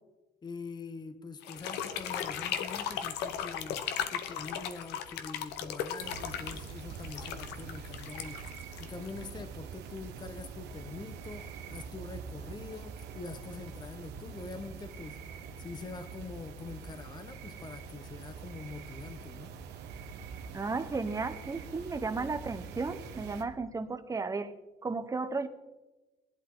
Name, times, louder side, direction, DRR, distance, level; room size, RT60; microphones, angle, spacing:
voice 1, 0.4-15.2 15.6-19.5, left 4 dB, 25° left, 0.9 m, -44 dB
sound 1, 1.4-9.4, left 9 dB, 90° left, 1.1 m, -37 dB
sound 2, 6.0-23.4, right 6 dB, 90° right, 1.4 m, -45 dB
voice 2, 20.5-24.5 24.8-25.5, right 4 dB, 20° right, 1.1 m, -34 dB
17.5 x 11.5 x 3.9 m
cardioid pair, 110°, 17 cm